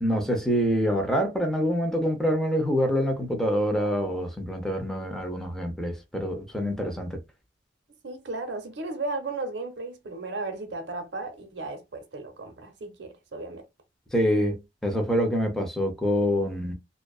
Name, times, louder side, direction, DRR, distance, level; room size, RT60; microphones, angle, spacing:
voice 1, 0.0-7.2 14.1-16.7, equal, 5° left, 0.6 m, -26 dB
voice 2, 8.0-13.7, right 3 dB, 80° right, 0.7 m, -35 dB
2.6 x 2.2 x 2.3 m
head